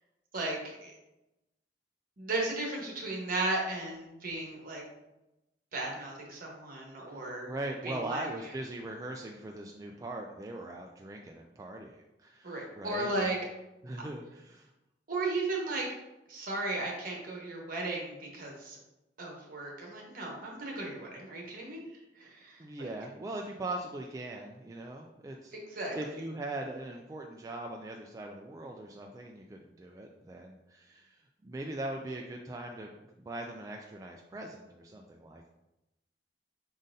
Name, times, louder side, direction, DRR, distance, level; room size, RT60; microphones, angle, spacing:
voice 1, 0.3-0.9 2.2-4.8 5.7-7.5 7.8-8.3 12.4-13.4 15.1-15.9 16.3-18.8 19.2-21.8 22.2-22.9 25.7-25.9, right 2 dB, 55° right, -1 dB, 1.2 m, -35 dB
voice 2, 7.1-13.3 13.8-14.7 22.6-33.0 33.2-35.5, right 2 dB, 20° right, 1 dB, 0.3 m, -41 dB
5.2 x 3.8 x 2.6 m, 0.95 s
head